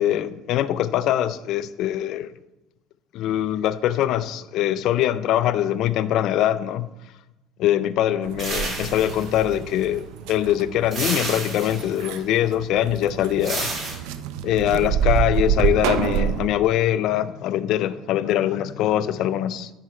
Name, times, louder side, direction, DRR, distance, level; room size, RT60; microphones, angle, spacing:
voice 1, 0.0-2.3 3.1-6.9 7.6-13.7 14.4-19.7, left 12 dB, 65° left, 0.4 m, -23 dB
sound 1, 8.2-16.5, right 9 dB, 80° right, 0.5 m, -27 dB
sound 2, 8.4-9.8 10.9-12.1 13.4-13.9, right 2 dB, 40° right, 2.8 m, -30 dB
9.8 x 4.8 x 4.4 m
supercardioid pair, 105°, 0 cm